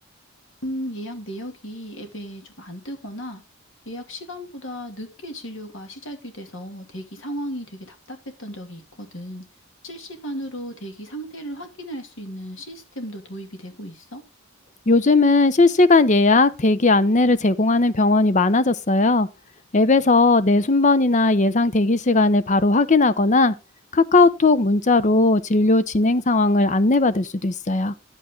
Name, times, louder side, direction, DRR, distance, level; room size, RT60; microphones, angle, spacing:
voice 1, 0.6-3.4 3.9-9.4 9.8-14.2, equal, 60° left, 2.5 m, -35 dB
voice 2, 14.9-19.3 19.7-23.5 23.9-27.9, left 3 dB, 35° left, 0.7 m, -17 dB
10.5 x 8.8 x 3.7 m
head